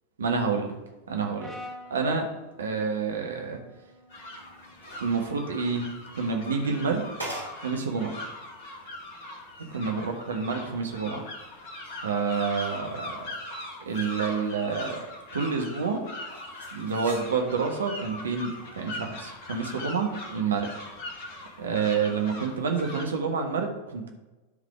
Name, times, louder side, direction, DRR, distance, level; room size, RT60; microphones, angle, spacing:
voice 1, 0.2-0.7 1.1-1.5 1.9-2.3 2.6-3.6 5.0-7.1 7.6-8.1 9.7-11.2 12.0-13.3 13.8-15.1 15.3-16.0 16.7-20.7 21.6-24.1, right 5 dB, 70° right, 3 dB, 1.2 m, -28 dB
Brass instrument, 1.4-5.6, left 1 dB, 10° right, 1.9 m, -48 dB
sound 1, 4.1-23.1, left 1 dB, 50° left, 2.0 m, -41 dB
sound 2, 4.3-5.4 6.2-7.8 8.2-8.3 8.9-9.0 9.4-9.8 11.4-13.4 13.7-15.0 15.4-15.5 16.3-17.6 18.5-18.7, right 1 dB, 85° right, 2.7 m, -44 dB
12.0 x 4.1 x 4.9 m, 1.1 s
figure-of-eight pair, 90°, 0 cm